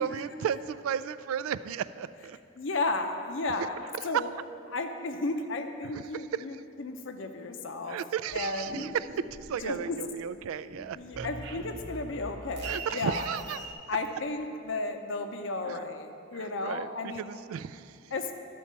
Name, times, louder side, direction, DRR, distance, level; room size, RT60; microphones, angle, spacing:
voice 1, 0.0-2.4 3.4-3.5 4.0-4.3 5.8-6.6 7.9-11.3 12.6-13.8 15.6-15.8 16.3-18.1, right 8 dB, 85° right, 15 dB, 0.3 m, -34 dB
voice 2, 2.6-3.7 4.0-4.3 4.7-8.0 8.3-8.8 9.6-10.0 11.0-13.3 13.9-17.2 18.1-18.3, left 3 dB, 65° left, 6 dB, 0.6 m, -33 dB
sound 1, 8.3-10.0 10.3-13.7, right 2 dB, 50° right, 0.8 m, -41 dB
12.5 x 4.5 x 7.3 m, 2.6 s
head